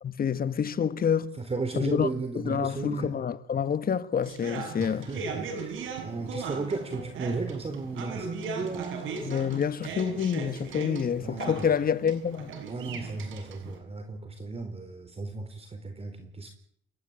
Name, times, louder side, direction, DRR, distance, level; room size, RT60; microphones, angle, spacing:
voice 1, 0.0-1.4 1.7-2.1 2.3-5.1 9.2-12.5, left 7 dB, 50° left, 1.5 m, -28 dB
voice 2, 1.4-3.1 4.8-9.4 11.2-11.7 12.7-16.5, right 3 dB, 30° right, 4.1 m, -35 dB
sound 1, 4.2-13.8, right 5 dB, 80° right, 7.0 m, -38 dB
29.5 x 14.5 x 9.0 m
cardioid pair, 90°, 20 cm